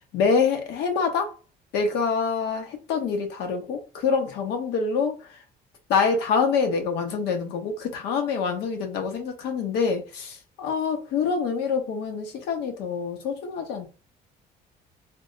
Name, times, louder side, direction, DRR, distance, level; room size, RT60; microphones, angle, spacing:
voice 1, 0.1-1.3 1.7-5.2 5.9-13.9, left 5 dB, 85° left, 0.9 m, -26 dB
3.4 x 2.1 x 2.5 m
cardioid pair, 110°, 17 cm